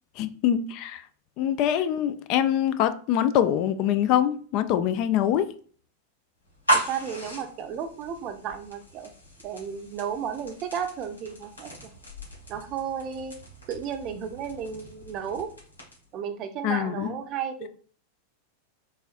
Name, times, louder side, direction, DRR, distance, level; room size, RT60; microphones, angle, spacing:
voice 1, 0.2-1.0 1.4-5.5 16.6-17.1, left 10 dB, 40° left, 0.4 m, -24 dB
sound 1, 6.4-16.2, right 1 dB, 85° left, 1.7 m, -35 dB
voice 2, 6.9-9.1 9.4-11.9 12.5-13.3 13.7-15.5 16.1-17.7, right 7 dB, 35° right, 0.6 m, -33 dB
4.0 x 3.8 x 2.5 m
figure-of-eight pair, 90°, 0 cm